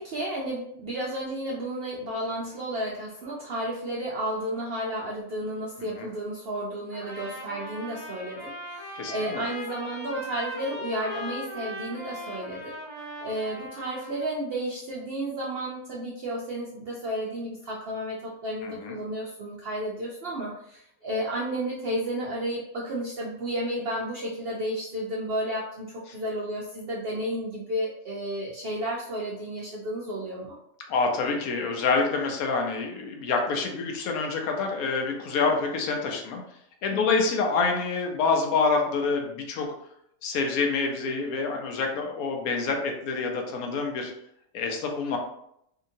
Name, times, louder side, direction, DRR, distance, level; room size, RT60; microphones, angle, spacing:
voice 1, 0.0-12.8 13.2-30.6 36.9-37.2, right 1 dB, 70° right, -4 dB, 0.5 m, -32 dB
Trumpet, 6.9-14.3, left 1 dB, 20° left, 1.0 m, -39 dB
voice 2, 9.0-9.4 18.6-19.0 30.9-36.4 36.8-39.7 40.2-44.1 44.5-45.2, left 4 dB, 75° left, 2 dB, 1.1 m, -27 dB
2.8 x 2.7 x 2.6 m, 0.74 s
omnidirectional pair, 1.6 m